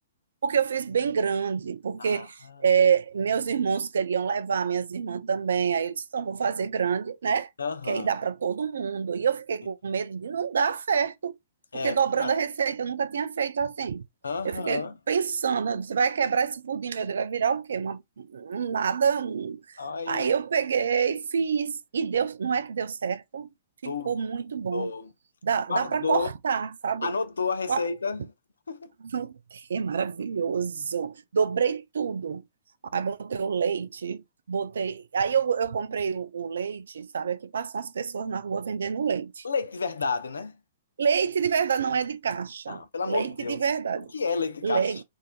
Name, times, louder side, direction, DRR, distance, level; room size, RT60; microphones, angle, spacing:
voice 1, 0.4-7.5 7.9-11.3 11.7-14.0 14.4-19.6 20.1-23.5 23.8-24.9 25.4-27.1 27.7-27.8 29.0-32.4 32.9-39.4 41.0-44.1 44.6-45.0, right 6 dB, 70° right, 0.5 m, -27 dB
voice 2, 7.6-8.1 11.7-12.4 14.2-14.9 19.8-20.3 23.8-24.1 24.7-25.1 25.7-26.3 27.0-28.2 28.7-28.9 39.4-40.5 42.7-43.6 44.1-45.0, left 4 dB, 80° left, 0.6 m, -30 dB
3.9 x 2.6 x 2.3 m
figure-of-eight pair, 120°, 0 cm